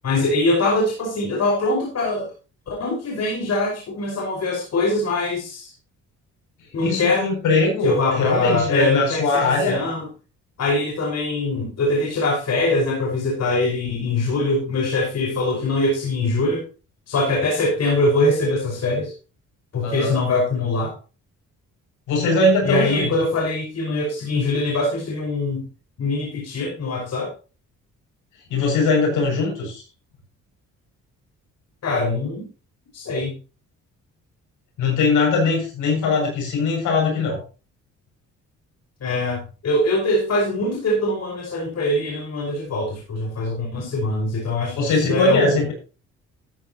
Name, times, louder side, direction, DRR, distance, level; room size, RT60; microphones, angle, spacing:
voice 1, 0.0-2.3 2.7-5.7 6.7-7.3 7.8-10.1 10.6-16.6 17.1-19.1 19.7-20.9 22.6-25.6 26.0-27.3 31.8-32.5 32.9-33.3 39.0-45.6, left 2 dB, 55° left, -2 dB, 5.4 m, -22 dB
voice 2, 6.8-9.8 19.8-20.2 22.1-23.1 28.5-29.8 34.8-37.4 44.7-45.7, left 3 dB, 80° left, 0 dB, 7.2 m, -21 dB
14.0 x 9.6 x 3.0 m, 0.33 s
cardioid pair, 90°, 30 cm